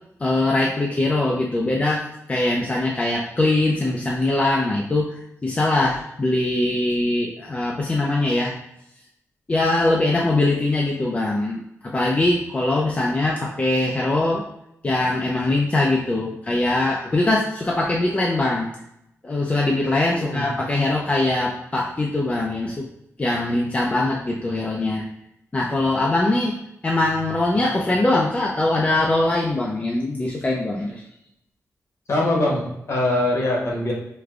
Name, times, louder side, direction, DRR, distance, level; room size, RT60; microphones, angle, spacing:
voice 1, 0.2-5.1 5.4-8.5 9.5-14.5 14.8-18.7 19.2-22.9 23.2-25.0 25.5-26.6 26.8-31.0, left 2 dB, 25° left, -3 dB, 0.4 m, -22 dB
voice 2, 20.1-20.5 32.1-33.9, left 1 dB, 55° left, -2 dB, 1.0 m, -22 dB
4.8 x 2.2 x 2.4 m, 0.79 s
wide cardioid pair, 135°, 6 cm